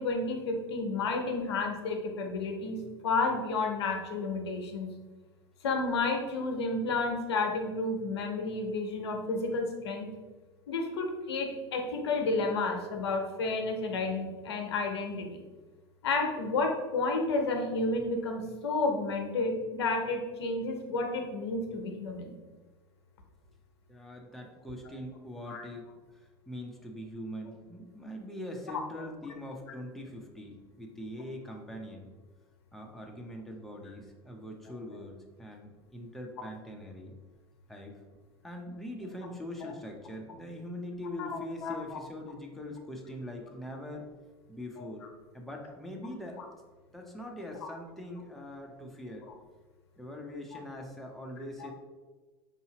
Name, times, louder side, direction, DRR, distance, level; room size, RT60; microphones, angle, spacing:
voice 1, 0.0-2.8 3.0-4.9 5.6-10.1 10.7-15.4 16.0-22.4 25.5-25.6 39.6-39.7 41.2-42.0 44.8-44.9 46.4-46.5 47.6-47.7, left 3 dB, 85° left, 3 dB, 0.7 m, -31 dB
voice 2, 23.9-32.1 32.7-37.1 37.7-38.0 38.4-44.1 44.5-45.0 45.3-46.5 46.9-49.3 50.0-51.7, left 1 dB, ahead, 0 dB, 0.6 m, -42 dB
4.9 x 2.7 x 2.8 m, 1.3 s
hypercardioid pair, 95°, 13 cm